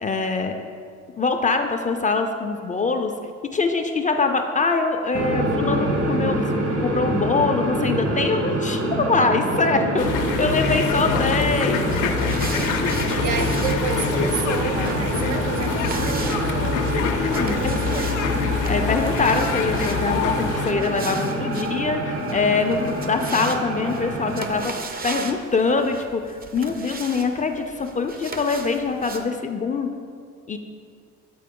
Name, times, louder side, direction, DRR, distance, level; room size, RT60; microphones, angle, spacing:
voice 1, 0.0-0.5 1.2-3.1 3.5-6.5 6.8-10.1 10.4-11.9 16.9-17.9 18.7-24.7 25.0-29.9 30.5-30.6, left 4 dB, 25° left, 0.4 m, -23 dB
sound 1, 5.1-24.7, right 1 dB, 50° right, 1.0 m, -26 dB
sound 2, 10.0-20.7, left 6 dB, 90° left, 0.5 m, -26 dB
sound 3, 11.8-29.3, right 4 dB, 30° right, 0.5 m, -38 dB
voice 2, 13.1-16.9 17.4-18.3, right 7 dB, 80° right, 0.6 m, -31 dB
7.6 x 4.4 x 3.6 m
cardioid pair, 90°, 30 cm